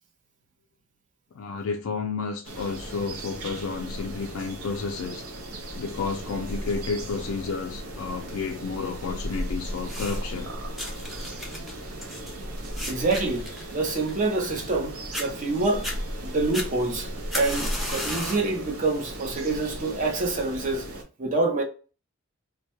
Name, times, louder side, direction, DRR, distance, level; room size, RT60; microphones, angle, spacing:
voice 1, 1.3-5.2 5.8-10.5, left 4 dB, 80° left, 0.4 m, -31 dB
sound 1, 2.4-21.0, right 1 dB, 85° right, 0.6 m, -36 dB
sound 2, 9.8-10.4 10.8-14.8 15.1-15.3 15.7-16.0 16.5-18.5 19.0-19.3 20.1-20.2, equal, ahead, 0.6 m, -35 dB
voice 2, 12.9-15.9 16.2-20.9 21.2-21.6, right 3 dB, 35° right, 0.6 m, -27 dB
2.2 x 2.1 x 2.8 m
head